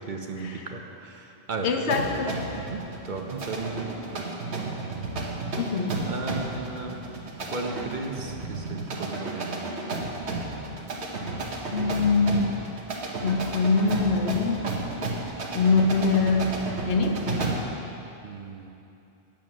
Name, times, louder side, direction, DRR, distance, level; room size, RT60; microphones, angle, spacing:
voice 1, 0.1-2.0 2.5-4.7 6.1-7.0 7.5-9.7 18.2-18.7, right 3 dB, 50° right, 3 dB, 0.9 m, -35 dB
voice 2, 1.6-2.3 5.6-6.1 11.7-12.6 13.2-14.6 15.5-17.3, left 4 dB, 85° left, 5 dB, 1.1 m, -24 dB
sound 1, 1.9-17.8, right 2 dB, 85° right, 1.4 m, -33 dB
8.7 x 7.4 x 6.2 m, 2.8 s
omnidirectional pair, 1.1 m